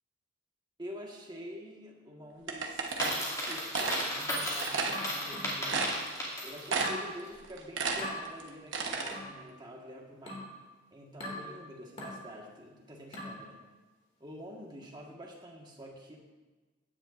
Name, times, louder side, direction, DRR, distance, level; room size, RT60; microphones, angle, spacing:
voice 1, 0.8-6.0 6.4-10.5 10.9-13.6 14.2-16.2, equal, 20° right, -1 dB, 1.5 m, -47 dB
sound 1, 2.5-4.1 4.6-5.0 5.4-5.5 5.7-6.3 6.7-7.1 7.4-9.1, right 4 dB, 65° right, 1.1 m, -32 dB
Coin (dropping), 2.9-6.8, equal, 15° left, 2.5 m, -35 dB
sound 2, 4.9-6.0 6.8-7.1 8.0-8.2 9.1-9.4 10.3-10.5 11.2-11.5 12.0-12.2 13.1-13.4, left 1 dB, 30° left, 2.2 m, -40 dB
16.5 x 9.9 x 2.5 m, 1.3 s
head